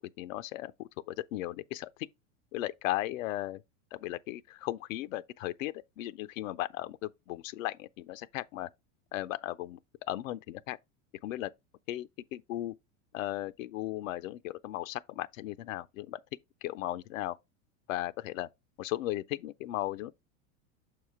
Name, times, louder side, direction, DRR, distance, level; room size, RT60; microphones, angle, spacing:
voice 1, 0.2-1.9 2.5-3.6 3.9-8.7 9.1-9.8 10.1-10.8 11.2-11.5 11.9-12.7 13.1-16.2 16.6-17.4 17.9-18.5 18.8-20.1, left 15 dB, 90° left, 0.6 m, -36 dB
6.4 x 4.8 x 3.5 m
supercardioid pair, 120°, 39 cm